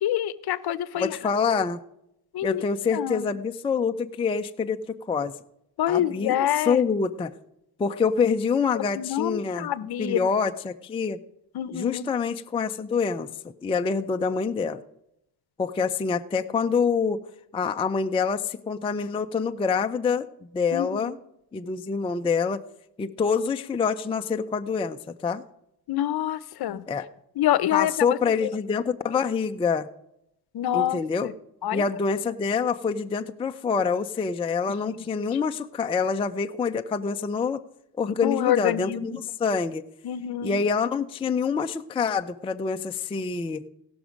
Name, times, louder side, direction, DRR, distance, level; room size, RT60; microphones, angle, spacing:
voice 1, 0.0-1.2 2.3-2.6 2.9-3.3 5.8-6.8 8.7-10.2 11.5-12.1 20.7-21.1 25.9-26.8 27.4-28.5 30.5-31.3 31.6-31.8 34.8-34.9 38.2-39.2 40.0-40.6, left 12 dB, 50° left, 16 dB, 0.8 m, -27 dB
voice 2, 1.0-1.8 2.4-5.3 5.9-7.3 7.8-9.7 10.0-11.2 11.7-13.3 13.6-14.8 15.6-17.2 17.5-20.3 20.5-21.2 21.5-22.6 23.0-25.4 26.9-27.1 27.7-29.9 30.7-31.3 31.7-37.6 38.0-39.8 40.4-43.7, left 5 dB, 10° left, 6 dB, 0.4 m, -26 dB
17.5 x 6.2 x 5.1 m, 0.79 s
supercardioid pair, 85°, 50 cm